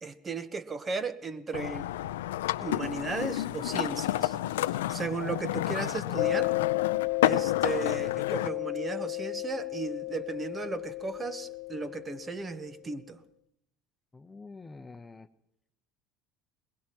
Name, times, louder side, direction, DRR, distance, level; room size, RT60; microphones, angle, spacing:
voice 1, 0.0-1.9 2.6-4.4 4.9-6.5 7.2-13.2, right 4 dB, 30° right, 1.2 m, -35 dB
sound 1, 1.5-8.5, left 14 dB, 85° left, 0.5 m, -31 dB
Mallet percussion, 6.2-12.5, left 22 dB, 70° left, 1.0 m, -33 dB
voice 2, 14.1-15.3, left 3 dB, 15° left, 1.0 m, -47 dB
21.5 x 21.0 x 3.0 m
hypercardioid pair, 80°, 0 cm